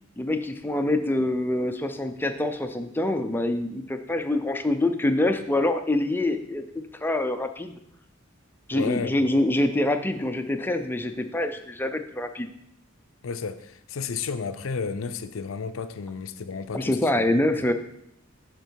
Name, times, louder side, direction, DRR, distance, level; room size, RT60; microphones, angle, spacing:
voice 1, 0.2-7.7 8.7-12.5 16.7-17.7, left 1 dB, 10° left, 0.6 m, -25 dB
voice 2, 8.7-9.1 13.2-17.4, left 5 dB, 75° left, 0.5 m, -32 dB
12.0 x 4.4 x 4.7 m
head